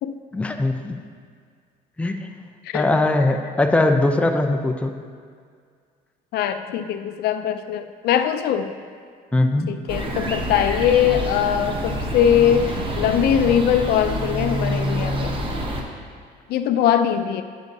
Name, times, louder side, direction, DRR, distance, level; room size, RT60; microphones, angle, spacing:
voice 1, 0.3-1.0 2.0-2.3 2.7-5.0 9.3-9.7, left 2 dB, 5° left, 4 dB, 0.5 m, -20 dB
voice 2, 6.3-8.7 9.7-15.3 16.5-17.4, left 9 dB, 70° left, 9 dB, 0.4 m, -21 dB
sound 1, 9.9-15.8, equal, 30° right, 0.9 m, -27 dB
9.2 x 8.1 x 2.7 m, 2.1 s
cardioid pair, 110°, 17 cm